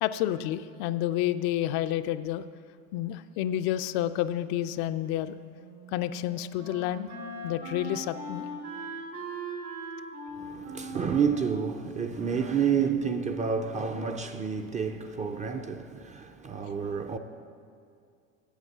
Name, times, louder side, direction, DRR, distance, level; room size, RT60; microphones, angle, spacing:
voice 1, 0.0-2.4 2.9-5.4 5.9-7.1 7.4-8.5, left 12 dB, 60° left, 0.5 m, -29 dB
Wind instrument woodwind instrument, 5.5-13.3, right 1 dB, 90° right, 2.4 m, -41 dB
voice 2, 10.4-17.2, right 6 dB, 20° right, 0.4 m, -29 dB
8.2 x 7.7 x 7.2 m
supercardioid pair, 105°, 42 cm